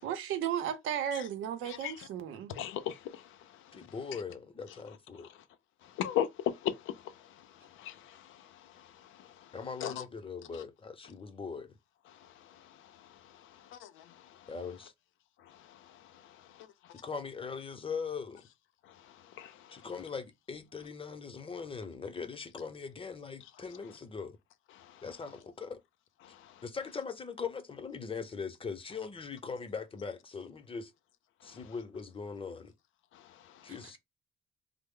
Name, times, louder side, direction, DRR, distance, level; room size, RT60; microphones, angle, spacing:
voice 1, 0.0-2.5, right 9 dB, 90° right, 0.6 m, -34 dB
voice 2, 2.5-3.9 5.8-9.5 9.8-10.0 10.5-10.6 12.1-13.5 14.1-14.5 15.5-16.7 18.9-19.8 24.8-25.0 26.2-26.6 31.4-31.6 33.1-33.7, left 10 dB, 85° left, 0.5 m, -40 dB
voice 3, 3.7-5.3 9.5-11.7 14.5-14.9 17.0-18.5 19.7-24.4 25.0-25.8 26.6-30.9 31.4-32.7 33.6-34.0, left 5 dB, 25° left, 0.7 m, -40 dB
3.2 x 2.0 x 3.6 m
cardioid pair, 90°, 20 cm